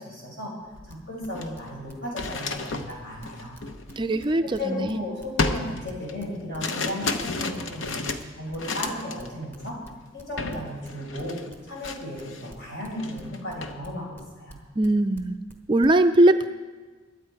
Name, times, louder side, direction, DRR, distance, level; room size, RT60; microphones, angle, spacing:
voice 1, 0.0-3.6 4.4-8.1 8.4-9.8 10.1-11.4 11.7-14.6, left 1 dB, 60° left, -2 dB, 5.0 m, -35 dB
sound 1, 0.7-0.9 1.2-4.8 5.4-9.3 9.6-9.9 10.4-10.6 10.9-12.6 12.9-13.8, left 3 dB, 75° left, 0.9 m, -32 dB
sound 2, 0.9-2.6 2.9-6.9 7.2-10.9 11.2-15.9, equal, 10° left, 1.1 m, -48 dB
voice 2, 4.0-5.0 14.8-15.4 15.7-16.5, right 1 dB, 25° right, 8 dB, 0.4 m, -20 dB
22.0 x 8.2 x 4.7 m, 1.4 s
head